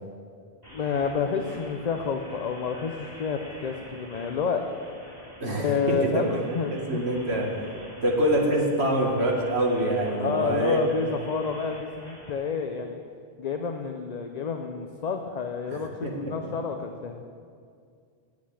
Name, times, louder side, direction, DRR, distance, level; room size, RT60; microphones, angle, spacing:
sound 1, 0.6-12.3, equal, 20° right, 3.0 m, -47 dB
voice 1, 0.7-4.7 5.6-7.0 10.1-13.0 13.4-17.2, left 5 dB, 45° left, 4 dB, 0.7 m, -29 dB
voice 2, 5.4-6.4 6.7-7.5 8.0-10.8 15.7-16.5, right 1 dB, 85° right, -1 dB, 2.1 m, -25 dB
9.6 x 8.3 x 8.5 m, 2.2 s
omnidirectional pair, 1.1 m